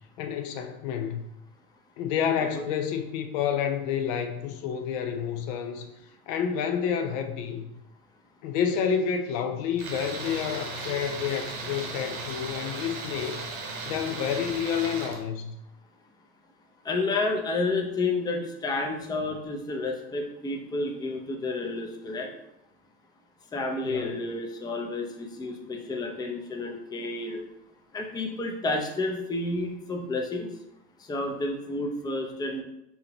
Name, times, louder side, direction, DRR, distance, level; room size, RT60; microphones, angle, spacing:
voice 1, 0.2-1.3 2.0-5.9 6.3-7.7 8.4-13.5 13.9-15.6 23.8-24.2, left 7 dB, 55° left, 6 dB, 0.6 m, -29 dB
Tools, 9.8-15.2, right 3 dB, 60° right, 1.3 m, -36 dB
voice 2, 16.8-22.3 23.5-27.4 27.9-30.5 31.0-32.6, left 2 dB, 10° left, 2 dB, 0.5 m, -30 dB
5.5 x 2.8 x 2.9 m, 0.85 s
hypercardioid pair, 80°, 46 cm